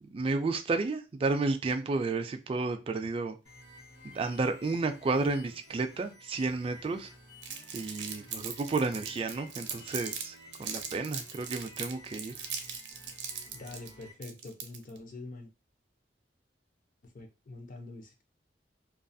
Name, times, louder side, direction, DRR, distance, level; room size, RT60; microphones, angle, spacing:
voice 1, 0.0-3.4 4.0-7.1 7.7-12.3, right 3 dB, 30° right, 0.3 m, -32 dB
sound 1, 3.4-14.1, left 1 dB, 75° left, 1.0 m, -53 dB
Crumpling crinkling, 7.4-10.2 10.5-15.0, right 7 dB, 75° right, 0.5 m, -39 dB
voice 2, 13.5-15.5 17.0-18.2, left 2 dB, 50° left, 0.5 m, -45 dB
2.4 x 2.3 x 2.6 m
head